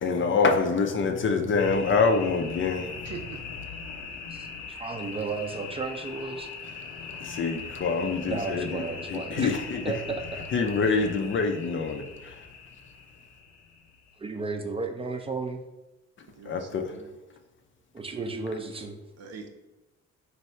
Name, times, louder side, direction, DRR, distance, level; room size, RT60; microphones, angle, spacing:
voice 1, 0.0-3.1 7.2-8.8 9.1-9.9 10.5-12.4 16.5-16.9, left 4 dB, 40° left, 0.5 m, -26 dB
sound 1, 1.6-14.2, left 5 dB, 80° left, 0.6 m, -40 dB
voice 2, 3.0-3.4 16.3-17.1 19.2-19.5, right 6 dB, 55° right, 0.7 m, -42 dB
voice 3, 4.3-6.5 8.3-9.6 9.8-10.2 14.2-15.6 17.9-19.0, right 4 dB, 20° right, 0.5 m, -33 dB
3.1 x 2.7 x 4.4 m
cardioid pair, 90°, 30 cm